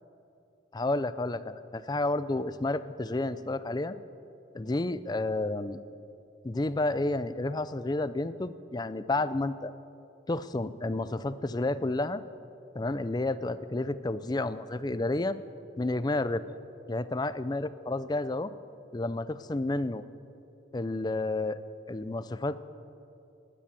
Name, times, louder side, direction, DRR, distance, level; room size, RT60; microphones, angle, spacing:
voice 1, 0.7-4.0 4.5-5.8 6.4-9.7 10.3-12.2 12.7-15.4 15.8-16.4 16.9-18.5 18.9-20.0 20.7-21.6 21.9-22.6, left 2 dB, 20° left, 14 dB, 0.4 m, -30 dB
18.5 x 10.0 x 7.5 m, 2.7 s
head